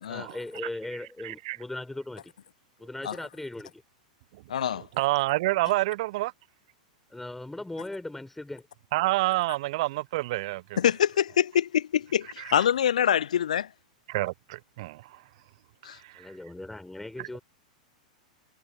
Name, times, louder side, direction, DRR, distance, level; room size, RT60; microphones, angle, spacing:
voice 1, 0.1-2.3 2.8-3.8 7.1-8.6 16.1-17.4, left 2 dB, 5° left, 4.2 m, -38 dB
voice 2, 1.2-1.6 4.3-4.4 4.7-6.3 8.9-10.8 12.4-12.6 14.1-15.2 15.9-16.3 17.2-17.4, right 19 dB, 50° right, 0.5 m, -29 dB
voice 3, 4.5-4.8 10.8-13.7 15.8-16.0, left 9 dB, 65° left, 0.5 m, -25 dB
figure-of-eight pair, 95°, 4 cm